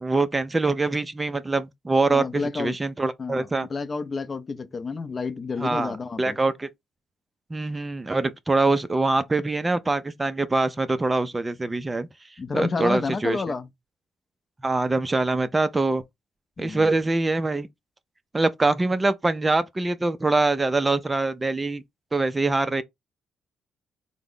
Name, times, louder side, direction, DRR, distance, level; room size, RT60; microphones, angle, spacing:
voice 1, 0.0-3.7 5.6-6.7 7.5-12.1 12.5-13.4 14.6-16.0 16.6-17.7 18.3-21.8 22.1-22.8, right 2 dB, 20° right, 0.4 m, -24 dB
voice 2, 2.1-2.8 3.2-6.4 12.4-13.7 16.6-16.9, left 4 dB, 35° left, 0.5 m, -30 dB
3.5 x 2.0 x 3.7 m
cardioid pair, 90°, 0 cm